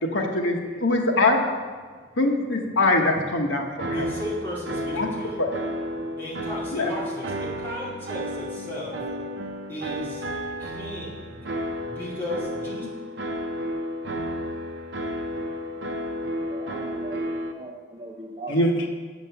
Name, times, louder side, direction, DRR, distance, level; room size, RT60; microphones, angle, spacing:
voice 1, 0.1-1.4 2.2-4.0 4.9-5.1 5.4-5.5 6.7-6.9 18.5-18.9, left 2 dB, 90° left, 1 dB, 1.1 m, -23 dB
sound 1, 3.8-17.5, equal, 70° right, 0.7 m, -32 dB
voice 2, 3.9-5.4 6.2-9.0 9.7-10.2 10.6-11.4 11.8-12.9, equal, 10° left, -8 dB, 2.2 m, -35 dB
voice 3, 15.9-18.6, right 2 dB, 25° right, -4 dB, 0.7 m, -40 dB
7.4 x 5.2 x 6.9 m, 1.5 s
head